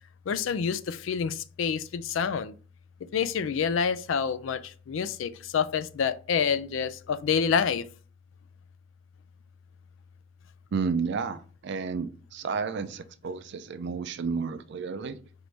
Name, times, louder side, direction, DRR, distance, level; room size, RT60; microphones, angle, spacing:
voice 1, 0.3-2.5 3.1-7.8, left 6 dB, 80° left, 0.4 m, -28 dB
voice 2, 10.7-15.2, right 5 dB, 60° right, 0.4 m, -31 dB
4.6 x 2.6 x 3.2 m
head